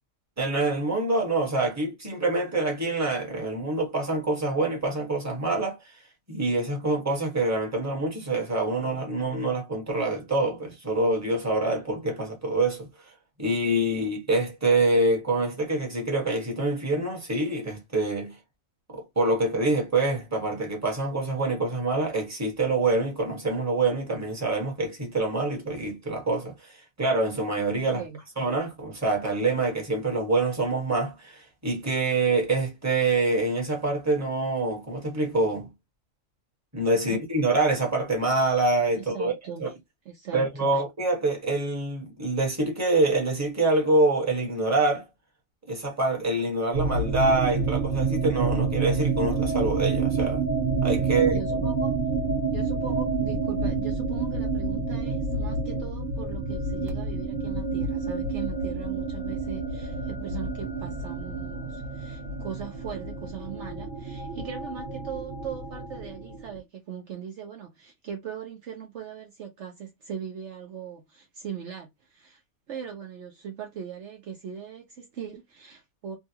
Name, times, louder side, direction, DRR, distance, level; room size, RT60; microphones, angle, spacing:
voice 1, 0.4-5.8 6.3-12.9 13.4-18.3 18.9-28.0 28.4-35.7 36.7-39.3 39.6-39.7 40.3-45.0 45.7-50.4 50.8-51.4, right 2 dB, 10° right, 1.2 m, -26 dB
voice 2, 38.9-39.7 40.0-40.8 51.0-52.0 52.5-72.4 72.7-76.2, right 8 dB, 60° right, 1.0 m, -39 dB
sound 1, 46.7-66.6, right 4 dB, 35° right, 1.2 m, -28 dB
3.6 x 2.3 x 2.8 m
omnidirectional pair, 1.4 m